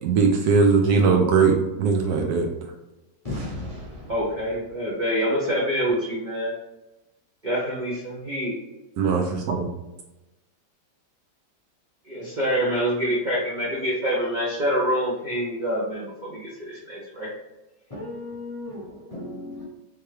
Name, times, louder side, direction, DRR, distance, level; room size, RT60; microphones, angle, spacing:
voice 1, 0.0-2.5 9.0-9.7, right 5 dB, 70° right, 1.0 m, -20 dB
voice 2, 3.2-4.5 17.9-19.6, left 2 dB, 40° left, 0.5 m, -35 dB
voice 3, 4.1-6.5 7.4-8.6 12.1-17.3, equal, 50° right, 0.5 m, -26 dB
3.4 x 3.0 x 3.1 m
omnidirectional pair, 1.9 m